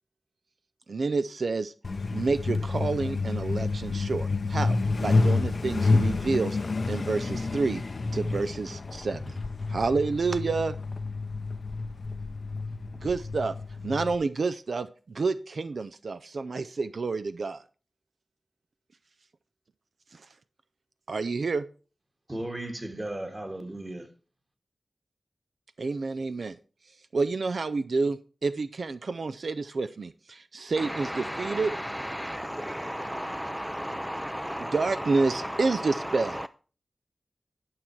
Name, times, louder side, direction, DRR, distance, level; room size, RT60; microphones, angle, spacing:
voice 1, 0.9-1.7 2.1-6.6 6.9-7.8 8.1-9.4 9.7-10.8 13.0-13.5 13.8-17.6 20.1-20.3 21.1-21.7 25.8-26.6 27.1-31.7 34.6-36.4, right 4 dB, 75° right, 0.4 m, -29 dB
Truck, 1.8-14.2, left 3 dB, 65° left, 0.5 m, -29 dB
voice 2, 22.3-24.1, right 1 dB, 30° right, 1.7 m, -35 dB
voice 3, 30.8-36.5, equal, 5° right, 0.3 m, -34 dB
11.0 x 5.8 x 4.6 m
wide cardioid pair, 65°, 0 cm